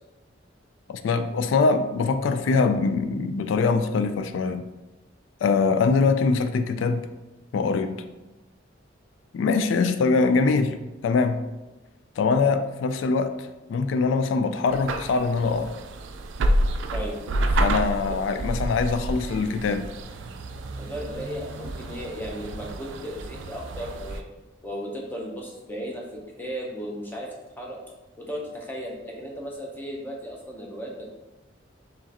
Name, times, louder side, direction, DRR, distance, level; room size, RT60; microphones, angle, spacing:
voice 1, 0.9-4.6 5.4-7.1 7.5-8.0 9.3-10.8 11.0-11.4 12.2-13.3 13.7-15.7 17.6-19.8, left 4 dB, 80° left, 9 dB, 0.3 m, -23 dB
sound 1, 14.7-24.2, right 1 dB, 80° right, 0.4 m, -29 dB
voice 2, 20.8-24.2 24.6-26.0 26.4-27.3 27.6-27.8 28.2-31.1, equal, 10° left, -2 dB, 0.7 m, -35 dB
4.7 x 3.1 x 2.9 m, 1.1 s
head